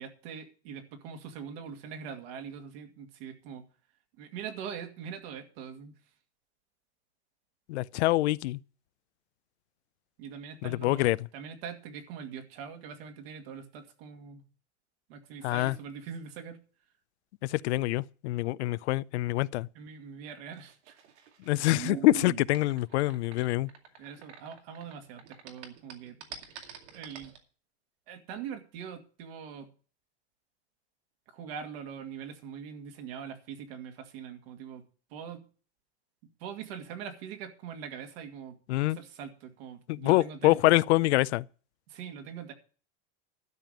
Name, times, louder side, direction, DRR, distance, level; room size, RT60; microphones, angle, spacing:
voice 1, 0.0-3.6 4.2-5.9 10.2-14.4 15.1-16.6 19.7-21.0 24.0-26.2 26.9-27.3 28.1-29.7 31.3-34.8 35.1-35.4 36.4-40.8 41.9-42.5, right 7 dB, 65° right, 2.3 m, -42 dB
voice 2, 7.7-8.6 10.6-11.2 15.4-15.8 17.4-19.7 21.5-23.7 38.7-39.0 39.9-41.5, left 18 dB, 80° left, 0.5 m, -25 dB
sound 1, 20.6-24.9 25.2-27.4, right 10 dB, 85° right, 2.4 m, -43 dB
12.0 x 5.2 x 8.8 m
supercardioid pair, 140°, 33 cm